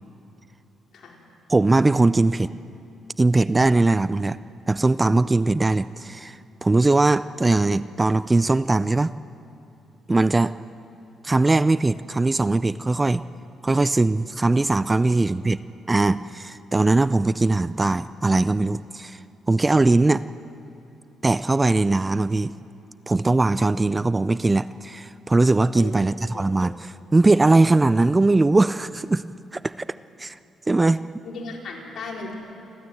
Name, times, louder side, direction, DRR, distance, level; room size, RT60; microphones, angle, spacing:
voice 1, 1.5-2.5 3.2-4.4 4.7-9.1 10.1-10.5 11.2-13.2 13.6-15.6 15.9-19.2 19.5-20.2 21.2-22.5 23.1-29.2 29.5-29.8 30.2-30.4 30.7-31.0, right 2 dB, 20° right, 15 dB, 0.4 m, -20 dB
voice 2, 31.2-32.3, left 4 dB, 65° left, -1 dB, 4.5 m, -36 dB
29.0 x 12.5 x 7.8 m, 2.8 s
cardioid pair, 80°, 0 cm